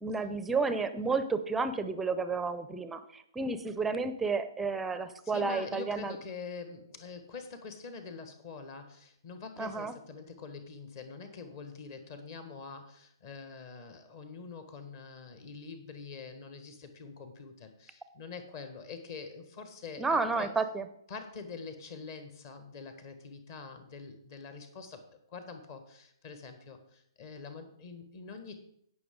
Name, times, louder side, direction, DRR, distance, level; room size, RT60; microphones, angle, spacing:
voice 1, 0.0-6.2 9.6-9.9 20.0-20.9, right 4 dB, 5° right, 11 dB, 0.6 m, -31 dB
voice 2, 5.2-20.5 21.1-28.6, left 4 dB, 35° left, 7 dB, 1.4 m, -45 dB
16.5 x 5.7 x 3.7 m, 0.70 s
figure-of-eight pair, 125°, 3 cm